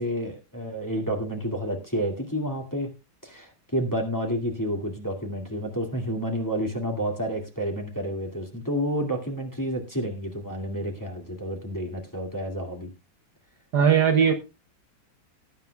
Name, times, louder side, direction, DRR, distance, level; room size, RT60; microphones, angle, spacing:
voice 1, 0.0-2.9 3.2-12.9, equal, 10° left, 2 dB, 2.2 m, -30 dB
voice 2, 13.7-14.3, right 7 dB, 60° right, 5 dB, 1.5 m, -18 dB
20.0 x 9.3 x 2.3 m, 0.26 s
omnidirectional pair, 2.1 m